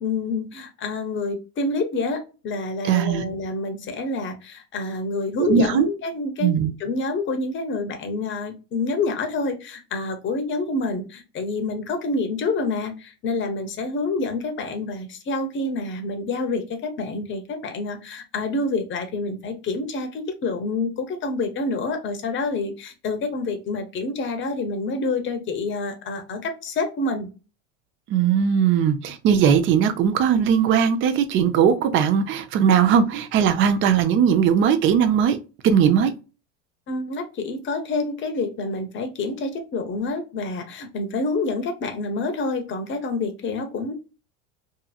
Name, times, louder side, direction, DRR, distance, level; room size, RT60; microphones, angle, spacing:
voice 1, 0.0-6.5 6.8-27.3 36.9-43.9, left 3 dB, 30° left, 0.8 m, -27 dB
voice 2, 2.9-3.2 5.4-5.9 6.4-6.7 28.1-35.4 35.6-36.1, right 8 dB, 35° right, 0.5 m, -19 dB
2.7 x 2.6 x 2.3 m
supercardioid pair, 110°, 37 cm